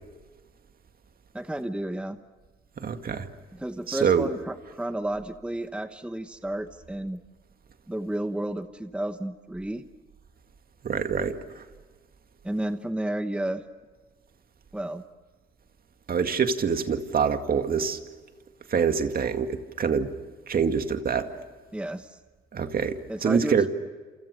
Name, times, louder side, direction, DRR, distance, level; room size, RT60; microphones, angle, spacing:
voice 1, 1.3-2.2 3.5-7.2 7.9-9.8 12.4-13.6 14.7-15.0 21.7-22.2 23.1-23.7, right 1 dB, 5° right, 9 dB, 1.1 m, -32 dB
voice 2, 2.8-3.3 3.9-4.3 10.8-11.6 16.1-18.0 18.7-20.1 20.5-21.3 22.5-23.7, right 6 dB, 50° right, 7 dB, 2.1 m, -25 dB
28.0 x 28.0 x 6.7 m, 1.4 s
cardioid pair, 90°, 20 cm